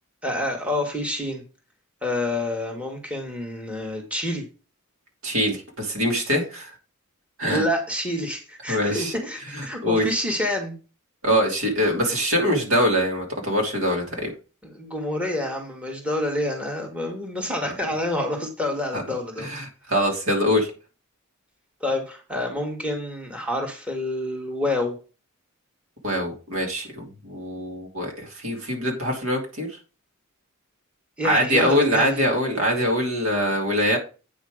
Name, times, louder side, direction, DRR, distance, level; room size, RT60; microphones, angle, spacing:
voice 1, 0.2-1.4 2.0-4.5 7.5-10.7 14.6-19.5 21.8-25.0 31.2-32.1, left 1 dB, 5° right, 1 dB, 1.8 m, -28 dB
voice 2, 5.2-6.7 7.4-7.6 8.7-9.1 9.6-10.1 11.2-14.3 18.9-19.0 19.4-20.7 26.0-29.7 31.2-34.0, equal, 70° right, 0 dB, 3.1 m, -23 dB
8.8 x 5.6 x 5.0 m, 0.33 s
head